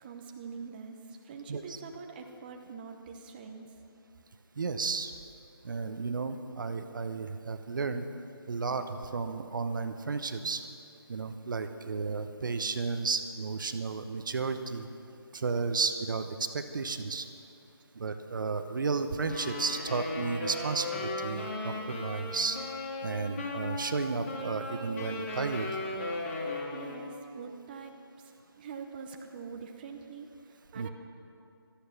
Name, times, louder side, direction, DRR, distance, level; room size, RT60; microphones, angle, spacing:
voice 1, 0.0-3.7 26.7-27.9 28.6-30.9, right 5 dB, 20° right, 3 dB, 0.8 m, -44 dB
voice 2, 4.6-5.1 5.6-8.1 8.5-10.6 11.1-14.9 15.3-17.3 17.9-22.6 23.0-25.7 30.7-30.9, right 4 dB, 50° right, 9 dB, 0.9 m, -33 dB
Wind instrument woodwind instrument, 19.2-27.2, left 2 dB, 30° left, 2.6 m, -36 dB
17.0 x 13.5 x 5.9 m, 2.5 s
figure-of-eight pair, 160°, 14 cm